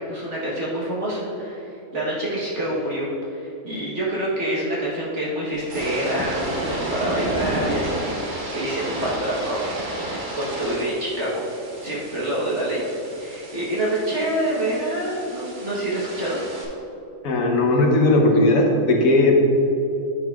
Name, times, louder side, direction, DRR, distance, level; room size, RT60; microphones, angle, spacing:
voice 1, 0.1-9.7 10.1-16.4, right 1 dB, 55° right, -6 dB, 1.4 m, -27 dB
sound 1, 5.5-16.6, right 1 dB, 40° right, 1.0 m, -32 dB
voice 2, 17.2-19.4, left 2 dB, 70° left, 0 dB, 1.3 m, -17 dB
8.7 x 6.3 x 2.3 m, 3.0 s
omnidirectional pair, 1.5 m